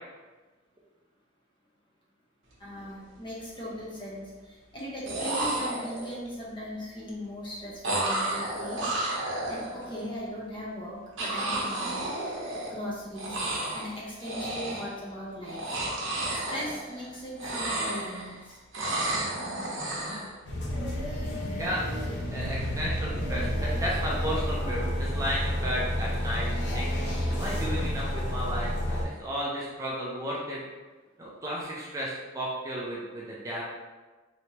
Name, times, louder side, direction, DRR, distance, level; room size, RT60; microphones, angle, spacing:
voice 1, 2.6-8.9 9.5-12.2 12.7-13.4 13.7-15.8 16.5-18.6, equal, 25° left, -6 dB, 0.9 m, -38 dB
sound 1, 2.6-2.8 3.2-3.8 4.8-4.9 5.1-6.3 7.8-10.0 11.2-12.9 13.1-13.9 14.2-15.0 15.4-17.1 17.3-18.4 18.7-20.3, right 1 dB, 70° right, 0.9 m, -32 dB
sound 2, 20.4-29.0, equal, 60° left, 0.8 m, -30 dB
voice 2, 22.3-26.5 26.7-30.6 31.2-33.6, equal, 15° right, -5 dB, 0.5 m, -33 dB
3.2 x 3.1 x 2.9 m, 1.3 s
head